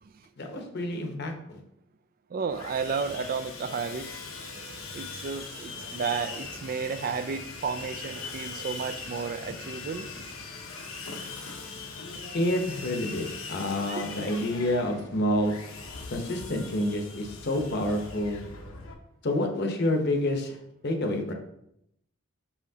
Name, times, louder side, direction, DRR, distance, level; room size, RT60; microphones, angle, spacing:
voice 1, 0.4-1.3 12.3-15.5 16.1-18.4 19.2-21.3, left 1 dB, 50° left, 0.9 m, -28 dB
voice 2, 2.3-4.2 4.9-10.1 14.0-14.1, right 5 dB, 45° right, 0.3 m, -32 dB
Sawing, 2.5-18.9, left 4 dB, 80° left, 1.0 m, -40 dB
Telephone, 4.5-10.6, right 1 dB, 80° right, 1.7 m, -51 dB
5.9 x 5.7 x 2.8 m
head